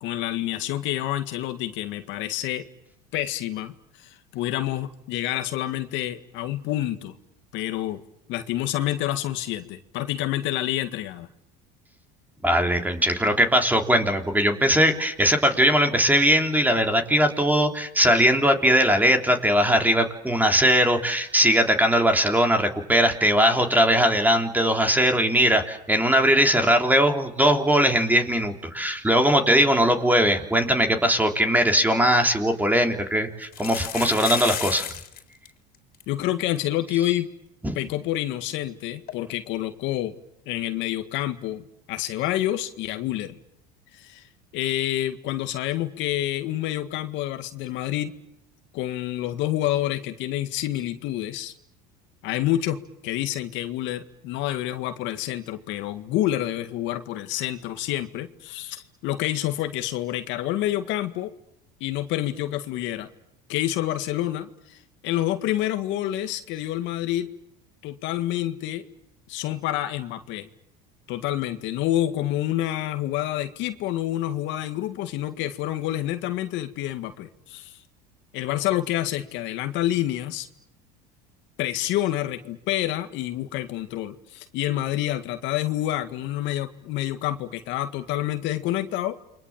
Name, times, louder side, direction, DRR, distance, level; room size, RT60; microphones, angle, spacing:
voice 1, 0.0-2.6 3.1-7.2 7.5-8.0 8.3-11.3 36.1-37.3 37.7-40.1 40.5-43.4 43.9-44.3 44.5-48.1 48.7-51.5 52.2-52.8 53.0-61.3 61.8-63.1 63.5-67.3 67.8-68.8 69.3-70.5 71.1-77.8 78.3-80.5 81.6-89.2, left 13 dB, 65° left, 8 dB, 2.0 m, -28 dB
voice 2, 12.4-34.9 37.6-37.8, equal, 10° right, 4 dB, 3.4 m, -20 dB
sound 1, 31.8-31.9 32.2-32.3 33.4-35.2 35.5-35.6 35.7-36.0 36.6-36.7 36.9-37.0 39.1-39.2, left 9 dB, 45° left, 4.0 m, -32 dB
29.5 x 23.5 x 7.5 m, 0.81 s
supercardioid pair, 100°, 21 cm